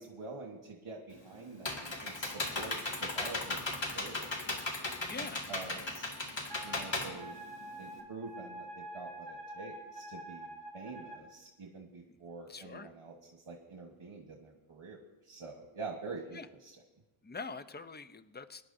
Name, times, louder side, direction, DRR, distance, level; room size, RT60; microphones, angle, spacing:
voice 1, 0.0-4.5 5.2-6.1 6.6-7.4 7.8-10.5 10.7-13.1 13.5-15.0 15.3-16.8, right 3 dB, 75° right, 1 dB, 1.4 m, -46 dB
Computer keyboard, 1.1-8.0, left 2 dB, 60° left, 2.1 m, -37 dB
voice 2, 5.0-5.4 12.5-12.9 16.3-16.5 17.2-18.6, left 4 dB, 20° left, 11 dB, 0.5 m, -44 dB
Wind instrument woodwind instrument, 6.5-11.2, right 1 dB, 55° right, 2.6 m, -47 dB
24.0 x 11.0 x 2.7 m, 1.0 s
wide cardioid pair, 80°, 50 cm